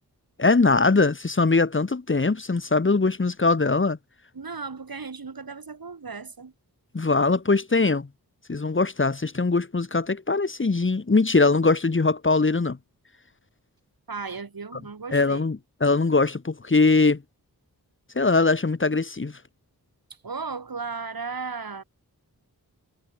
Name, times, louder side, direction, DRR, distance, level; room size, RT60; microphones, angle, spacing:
voice 1, 0.4-4.0 6.9-8.1 8.5-12.8 15.1-17.2 18.1-19.3, left 3 dB, 30° left, 1.3 m, -21 dB
voice 2, 4.3-6.5 14.1-15.5 20.2-21.8, right 4 dB, 60° right, 5.5 m, -35 dB
cardioid pair, 50°, 39 cm